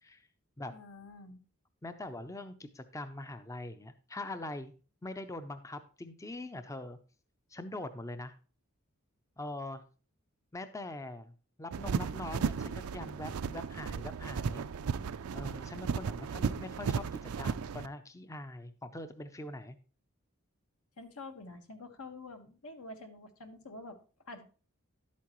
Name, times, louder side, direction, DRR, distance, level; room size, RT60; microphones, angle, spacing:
voice 1, 0.7-1.4 21.0-24.0 24.2-24.4, left 2 dB, 75° left, 6 dB, 1.4 m, -47 dB
voice 2, 1.8-4.7 5.0-7.0 7.5-8.3 9.4-9.8 10.5-11.3 11.6-14.6 15.3-19.8, left 2 dB, 15° left, 10 dB, 0.5 m, -43 dB
sound 1, 11.7-17.9, right 6 dB, 80° right, 0.4 m, -35 dB
11.0 x 8.4 x 3.0 m, 0.36 s
head